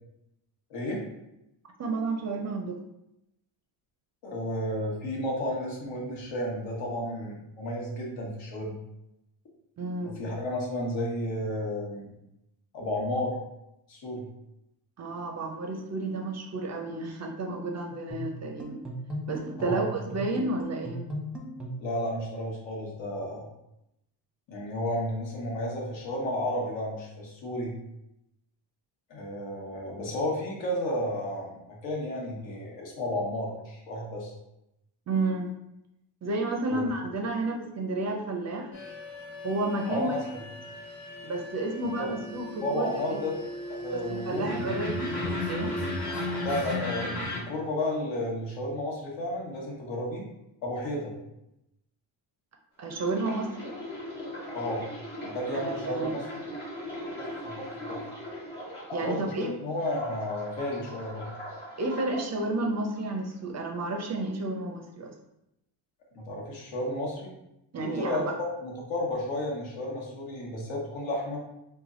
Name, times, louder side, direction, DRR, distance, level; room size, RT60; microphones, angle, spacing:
voice 1, 0.7-1.0 4.2-8.7 10.0-12.1 12.7-13.4 13.9-14.2 19.6-19.9 21.8-23.5 24.5-27.7 29.1-34.3 36.7-36.8 39.9-40.2 42.0-42.1 42.6-43.3 43.7-44.8 46.4-50.2 50.6-51.1 54.5-54.9 55.2-56.3 57.2-58.0 59.0-61.3 66.1-67.3 67.7-71.4, left 1 dB, 75° left, -3 dB, 1.2 m, -32 dB
voice 2, 1.8-2.8 9.8-10.2 15.0-18.8 19.3-21.1 35.1-35.5 36.2-38.7 39.4-40.1 41.2-43.2 43.9-45.2 45.5-45.8 52.8-53.7 55.7-56.1 58.9-59.5 61.8-65.1 67.7-68.2, right 2 dB, 40° right, 2 dB, 0.4 m, -31 dB
sound 1, 18.1-22.0, right 1 dB, ahead, 0.7 m, -37 dB
sound 2, 38.7-47.4, left 1 dB, 50° left, 1.3 m, -35 dB
sound 3, 52.9-59.4 59.8-62.2 62.9-63.1, equal, 20° left, 1.3 m, -40 dB
3.3 x 2.2 x 3.6 m, 0.86 s
cardioid pair, 115°, 46 cm